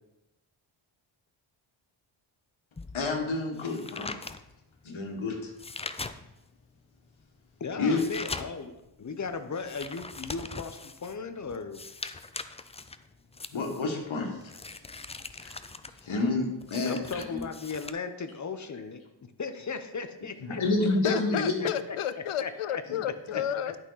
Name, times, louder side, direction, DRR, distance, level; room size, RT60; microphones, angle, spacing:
sound 1, 2.8-6.6 7.0-17.9, left 3 dB, 15° left, 0.3 m, -42 dB
voice 1, 2.9-4.1 4.8-5.5 7.8-8.0 13.5-14.5 15.0-15.1 15.4-15.6 16.0-17.4 20.4-21.7, left 3 dB, 70° left, 2 dB, 1.9 m, -29 dB
voice 2, 7.6-8.7 9.0-11.8 16.8-19.0 19.4-20.6 21.0-21.7 22.4-22.8, left 5 dB, 35° left, 9 dB, 0.9 m, -36 dB
voice 3, 20.9-23.8, left 10 dB, 90° left, 13 dB, 0.7 m, -32 dB
11.0 x 5.8 x 4.1 m, 0.95 s
wide cardioid pair, 95°, 49 cm